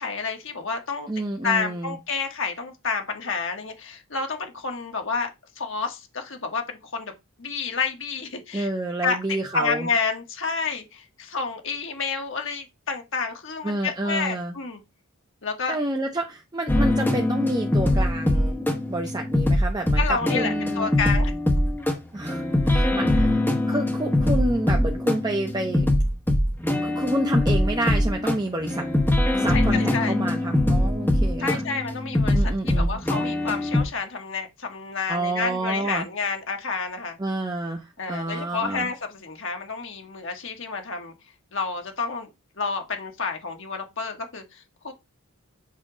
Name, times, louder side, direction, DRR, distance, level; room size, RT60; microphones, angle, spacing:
voice 1, 0.0-1.1 1.4-7.1 7.4-8.7 9.0-9.2 9.5-14.8 15.4-15.8 17.8-18.0 20.0-21.3 29.5-30.2 31.4-37.2 38.0-41.1 41.5-42.3 42.6-44.9, left 5 dB, 60° left, 1.3 m, -29 dB
voice 2, 1.1-2.0 8.5-9.9 13.6-14.5 15.7-20.9 22.1-26.0 26.8-28.9 29.3-31.6 32.3-33.0 35.1-36.1 37.2-38.9, right 1 dB, 20° right, 0.7 m, -29 dB
sound 1, 16.7-33.8, left 1 dB, 10° left, 1.1 m, -22 dB
7.4 x 2.9 x 4.9 m
head